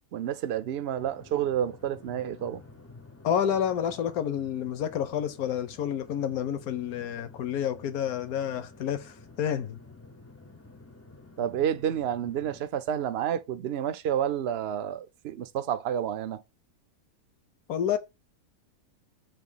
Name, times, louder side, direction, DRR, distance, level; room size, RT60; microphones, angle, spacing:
voice 1, 0.1-2.6 11.4-16.4, right 10 dB, 55° right, 0.7 m, -30 dB
sound 1, 1.0-12.6, left 3 dB, 15° left, 0.5 m, -51 dB
voice 2, 3.2-9.8 17.7-18.0, left 9 dB, 70° left, 1.3 m, -29 dB
7.3 x 2.8 x 5.5 m
omnidirectional pair, 1.7 m